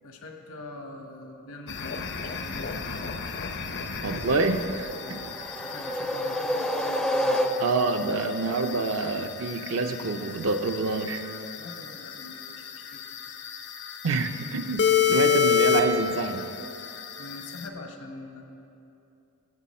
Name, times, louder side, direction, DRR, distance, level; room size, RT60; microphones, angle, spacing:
voice 1, 0.0-2.7 5.0-7.5 11.6-13.0 17.2-18.4, left 1 dB, 70° left, 4 dB, 1.0 m, -43 dB
sound 1, 1.7-17.7, left 7 dB, 55° left, 0.6 m, -30 dB
voice 2, 4.0-4.9 7.6-11.2 14.0-16.5, right 3 dB, 65° right, 6 dB, 0.5 m, -27 dB
sound 2, 4.9-8.0, equal, 5° left, 0.4 m, -28 dB
14.0 x 7.6 x 4.2 m, 2.8 s
head